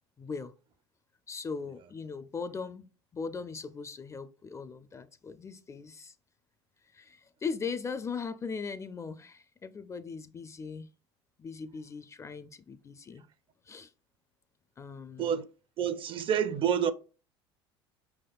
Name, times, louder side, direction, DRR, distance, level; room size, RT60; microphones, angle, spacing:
voice 1, 0.2-0.5 1.3-6.1 6.9-10.9 11.4-13.2 13.7-13.9 14.8-15.3, left 5 dB, 20° left, 0.4 m, -39 dB
voice 2, 15.8-16.9, right 8 dB, 40° right, 0.4 m, -28 dB
5.2 x 3.5 x 2.3 m
hypercardioid pair, 75°, 13 cm